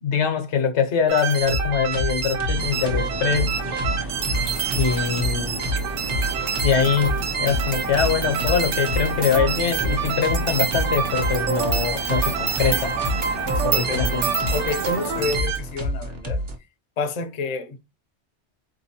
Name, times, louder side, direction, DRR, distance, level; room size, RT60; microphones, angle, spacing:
voice 1, 0.0-3.6 4.7-5.7 6.6-13.0 13.6-14.3, left 7 dB, 80° left, 1.1 m, -23 dB
sound 1, 1.1-15.6, right 7 dB, 80° right, 0.9 m, -27 dB
sound 2, 1.4-16.5, left 1 dB, 55° right, 1.1 m, -29 dB
sound 3, 2.5-15.4, right 2 dB, 30° right, 0.5 m, -35 dB
voice 2, 13.5-16.4 17.0-17.8, left 4 dB, 50° left, 0.5 m, -29 dB
3.7 x 2.9 x 2.8 m
omnidirectional pair, 1.2 m